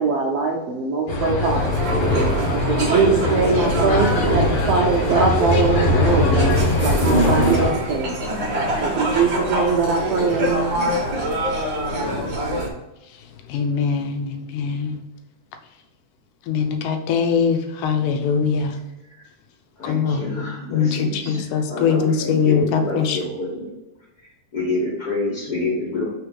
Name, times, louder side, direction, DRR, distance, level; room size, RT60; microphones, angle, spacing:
voice 1, 0.0-1.6 2.7-8.2 8.8-10.7, right 4 dB, 75° right, -1 dB, 1.4 m, -22 dB
sound 1, 1.1-7.7, left 1 dB, 70° left, 1.8 m, -21 dB
sound 2, 1.4-12.7, right 1 dB, 55° right, 1.4 m, -25 dB
voice 2, 13.5-15.0 16.5-18.7 19.8-23.2, left 6 dB, 90° left, 6 dB, 2.3 m, -22 dB
voice 3, 19.8-23.7 24.5-26.0, left 2 dB, 40° left, -6 dB, 1.5 m, -28 dB
5.0 x 4.1 x 4.7 m, 0.98 s
omnidirectional pair, 3.6 m